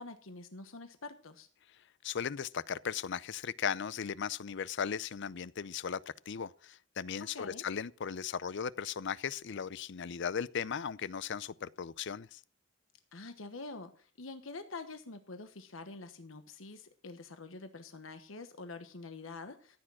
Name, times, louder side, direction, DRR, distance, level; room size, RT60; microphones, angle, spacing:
voice 1, 0.0-1.5 7.3-7.6 13.1-19.8, left 3 dB, 80° left, 1.2 m, -46 dB
voice 2, 2.0-6.0 6.3-12.4, left 7 dB, 65° left, 0.5 m, -37 dB
14.5 x 8.7 x 6.1 m
head